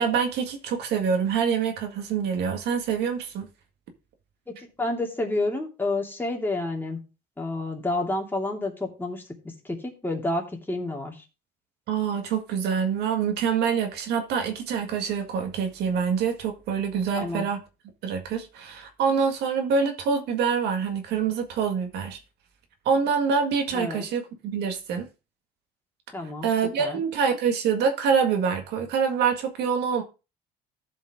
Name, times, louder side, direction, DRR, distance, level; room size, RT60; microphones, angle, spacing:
voice 1, 0.0-3.5 11.9-17.6 18.0-22.2 22.9-25.1 26.4-30.0, right 6 dB, 80° right, 1.8 m, -25 dB
voice 2, 4.5-7.0 7.4-11.2 17.1-17.5 23.7-24.0 26.1-26.5 26.8-27.0, left 2 dB, 10° left, 2.7 m, -29 dB
14.5 x 5.3 x 3.7 m
cardioid pair, 110°, 17 cm